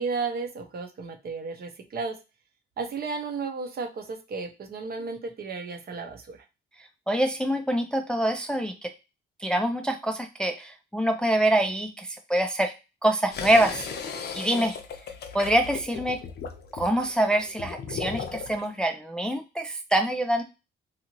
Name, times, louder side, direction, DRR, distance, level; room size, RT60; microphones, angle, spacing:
voice 1, 0.0-2.2 2.8-6.4, right 4 dB, 50° right, 5 dB, 0.7 m, -33 dB
voice 2, 7.1-8.9 9.4-12.7 13.0-13.9 14.3-14.8 15.3-16.2 16.7-20.4, right 1 dB, 5° left, 4 dB, 0.3 m, -25 dB
sound 1, 13.3-18.7, left 6 dB, 55° left, 0.6 m, -36 dB
2.7 x 2.4 x 2.9 m, 0.27 s
cardioid pair, 90°, 20 cm